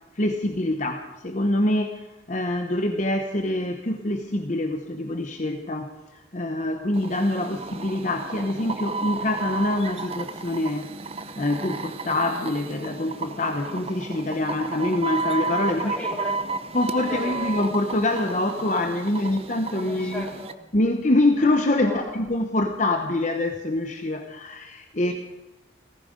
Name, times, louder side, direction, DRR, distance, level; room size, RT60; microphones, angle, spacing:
voice 1, 0.1-10.9 11.2-16.0 16.7-20.3 20.7-25.1, left 1 dB, 40° left, 5 dB, 0.9 m, -25 dB
sound 1, 6.9-20.5, right 3 dB, 30° right, 0.7 m, -33 dB
voice 2, 7.1-7.7 15.6-16.4 16.7-16.8 17.1-17.5 19.9-20.6 21.8-22.2 25.1-25.2, equal, 5° left, -2 dB, 3.4 m, -37 dB
18.0 x 15.0 x 5.1 m, 1.1 s
head